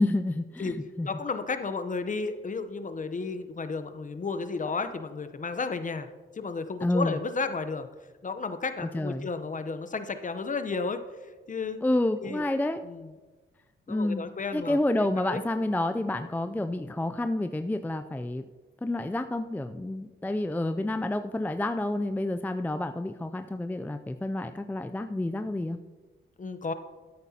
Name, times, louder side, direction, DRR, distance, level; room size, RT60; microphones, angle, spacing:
voice 1, 0.0-1.1 6.8-7.2 8.8-9.3 11.8-12.8 13.9-14.2 14.5-18.4 18.8-25.8, left 1 dB, 10° left, 8 dB, 0.4 m, -29 dB
voice 2, 1.0-6.1 6.3-7.9 8.2-11.0 11.5-11.8 12.2-12.4 12.8-13.1 13.9-15.4 26.4-26.7, left 4 dB, 35° left, 10 dB, 0.8 m, -33 dB
13.0 x 9.5 x 2.8 m, 1.3 s
cardioid pair, 65°, 21 cm